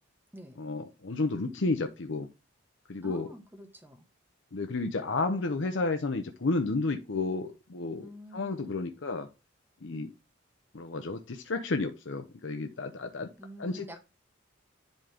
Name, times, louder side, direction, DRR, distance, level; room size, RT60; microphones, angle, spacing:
voice 1, 0.6-2.3 2.9-3.3 4.5-9.3 9.8-10.1 10.7-13.3 13.6-14.0, left 3 dB, 70° left, 0.7 m, -32 dB
voice 2, 3.0-4.1 8.0-8.8 13.4-14.0, equal, 10° right, 1.1 m, -47 dB
10.5 x 3.8 x 3.4 m
head